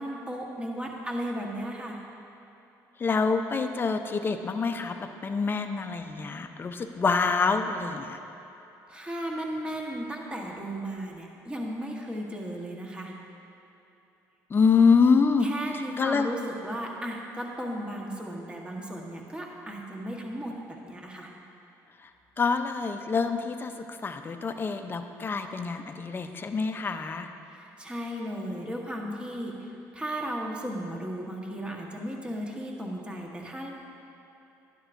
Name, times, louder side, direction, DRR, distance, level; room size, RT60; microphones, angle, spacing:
voice 1, 0.0-2.0 8.9-13.1 15.4-21.3 27.5-33.7, equal, 15° right, -1 dB, 1.2 m, -35 dB
voice 2, 3.0-8.2 14.5-15.5 16.0-16.3 22.4-27.3, left 5 dB, 30° left, 7 dB, 0.6 m, -26 dB
11.0 x 11.0 x 2.6 m, 2.9 s
cardioid pair, 90°, 7 cm